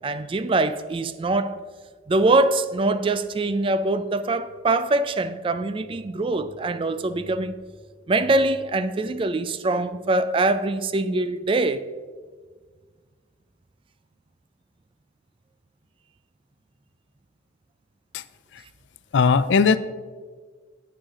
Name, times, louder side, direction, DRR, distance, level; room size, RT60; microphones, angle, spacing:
voice 1, 0.0-1.6 2.1-7.6 8.1-11.9, right 2 dB, 25° right, 0.3 m, -23 dB
voice 2, 19.1-19.8, left 5 dB, 70° left, 0.4 m, -18 dB
8.8 x 5.7 x 5.0 m
head